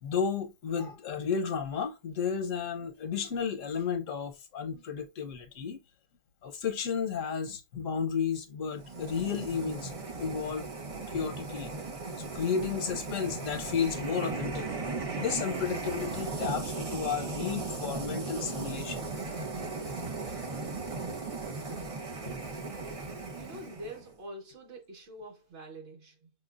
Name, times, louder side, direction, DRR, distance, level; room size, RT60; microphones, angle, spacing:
voice 1, 0.0-5.8 6.4-9.9 10.2-10.7 11.0-11.7 12.2-14.7 15.2-19.1 19.8-20.0 20.7-20.8 21.4-21.5, left 6 dB, 80° left, 1.2 m, -33 dB
sound 1, 8.7-24.1, right 3 dB, 30° right, 0.7 m, -37 dB
voice 2, 23.4-26.3, right 1 dB, 65° right, 1.7 m, -45 dB
6.4 x 2.3 x 2.4 m
omnidirectional pair, 1.3 m